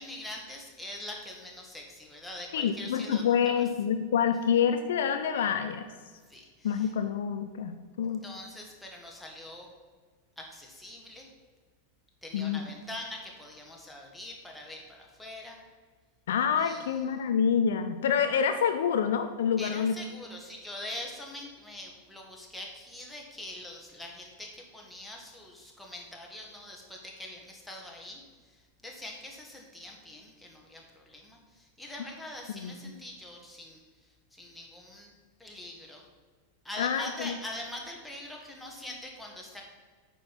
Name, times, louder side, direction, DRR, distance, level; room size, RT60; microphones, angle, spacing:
voice 1, 0.0-3.6 6.3-6.9 8.2-9.7 10.4-11.3 12.2-15.6 16.6-17.0 19.6-35.1 35.4-36.0 36.6-39.6, left 1 dB, 5° left, -1 dB, 1.8 m, -43 dB
voice 2, 2.5-5.8 6.6-8.2 12.3-12.6 16.3-20.0 32.5-32.9 36.8-37.3, left 7 dB, 60° left, 8 dB, 0.5 m, -27 dB
8.8 x 5.3 x 6.0 m, 1.5 s
figure-of-eight pair, 90°, 0 cm